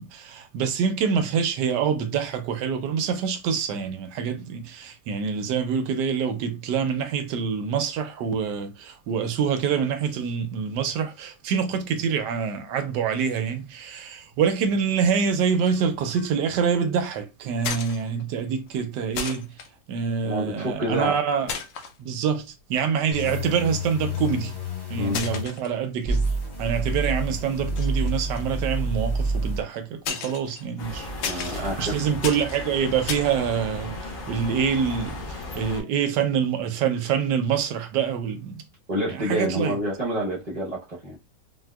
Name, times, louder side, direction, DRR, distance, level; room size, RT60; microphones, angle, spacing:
voice 1, 0.0-19.5 19.9-21.6 22.0-24.5 24.9-26.3 26.6-38.6 39.1-39.8, right 7 dB, 80° right, 1.2 m, -26 dB
sound 1, 15.7-15.9 16.2-16.5 17.6-18.4 18.7-18.8 19.1-19.7 20.7-21.0 21.5-22.0 22.6-22.7 23.9-24.4 25.1-26.3 26.6-27.0 27.5-29.5 30.0-33.3, left 6 dB, 75° left, 0.7 m, -34 dB
voice 2, 20.2-21.2 25.0-25.2 31.2-32.0 38.9-41.2, equal, 45° right, 0.5 m, -28 dB
sound 2, 23.1-25.4 26.1-29.6, right 1 dB, 25° left, 0.5 m, -28 dB
sound 3, 30.8-35.8, left 1 dB, 55° left, 1.4 m, -35 dB
4.2 x 2.2 x 2.2 m
omnidirectional pair, 1.9 m